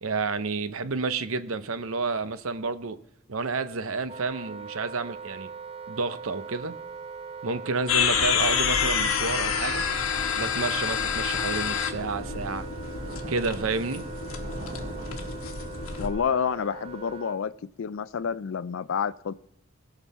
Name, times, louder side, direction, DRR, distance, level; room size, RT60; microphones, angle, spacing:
voice 1, 0.0-3.0 3.3-5.5 5.9-6.7 7.4-9.8 10.3-12.7 13.3-14.0, right 4 dB, 80° right, 0.7 m, -30 dB
Wind instrument woodwind instrument, 4.1-17.4, right 5 dB, 30° right, 0.4 m, -42 dB
Thunder / Rain, 6.2-17.2, right 2 dB, 45° right, 1.1 m, -48 dB
sound 1, 7.9-16.1, left 6 dB, 85° left, 1.3 m, -28 dB
voice 2, 16.0-17.5 17.8-19.3, left 7 dB, 70° left, 0.4 m, -28 dB
17.5 x 6.1 x 4.2 m
head